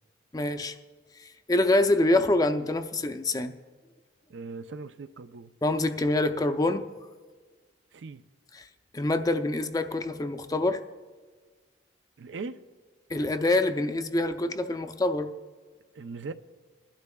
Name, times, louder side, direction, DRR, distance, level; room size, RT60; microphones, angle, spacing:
voice 1, 0.3-0.8 1.5-3.5 5.6-6.8 8.6-8.7 8.9-10.8 13.1-15.3, left 2 dB, 20° left, 0.5 m, -25 dB
voice 2, 4.3-5.5 7.9-8.2 12.2-12.6 15.9-16.3, right 4 dB, 90° right, 0.5 m, -39 dB
20.5 x 12.0 x 2.3 m
head